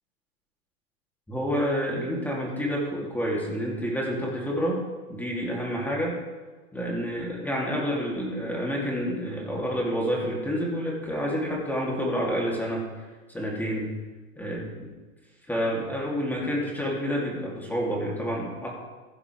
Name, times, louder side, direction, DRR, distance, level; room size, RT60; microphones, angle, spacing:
voice 1, 1.3-4.8 5.1-6.1 6.7-12.9 13.3-13.9 14.4-14.9 15.5-18.7, equal, 5° left, -3 dB, 3.0 m, -28 dB
15.5 x 10.0 x 3.5 m, 1.3 s
hypercardioid pair, 120°, 44 cm